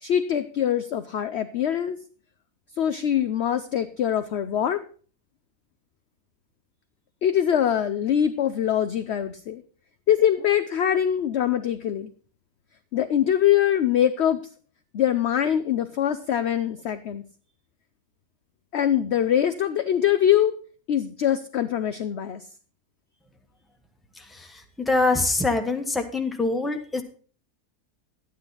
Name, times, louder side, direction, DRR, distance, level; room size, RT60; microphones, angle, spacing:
voice 1, 0.0-2.0 2.8-4.8 7.2-9.6 10.1-12.1 12.9-14.4 14.9-17.2 18.7-20.5 20.9-22.4, left 10 dB, 60° left, 10 dB, 0.7 m, -23 dB
voice 2, 24.9-27.0, left 3 dB, ahead, 4 dB, 1.0 m, -23 dB
12.0 x 9.5 x 4.1 m, 0.42 s
omnidirectional pair, 1.6 m